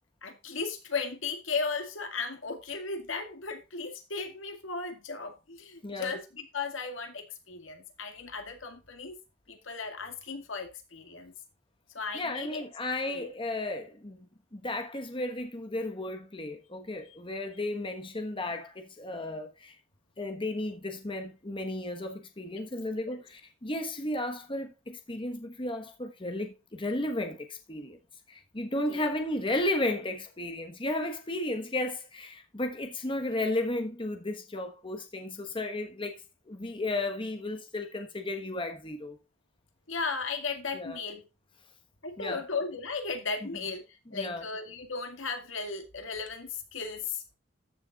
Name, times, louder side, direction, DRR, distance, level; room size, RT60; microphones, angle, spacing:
voice 1, 0.2-9.2 9.5-11.3 11.9-12.6 13.1-13.3 23.1-23.2 28.9-29.1 39.9-41.2 42.0-43.8 44.1-47.2, left 4 dB, 80° left, 2.1 m, -36 dB
voice 2, 5.8-6.1 12.1-14.3 14.5-19.7 20.2-28.0 28.3-36.2 36.5-39.2 40.7-41.0 42.2-42.4 44.1-44.4, left 1 dB, 25° left, 1.3 m, -34 dB
14.0 x 7.0 x 2.4 m
head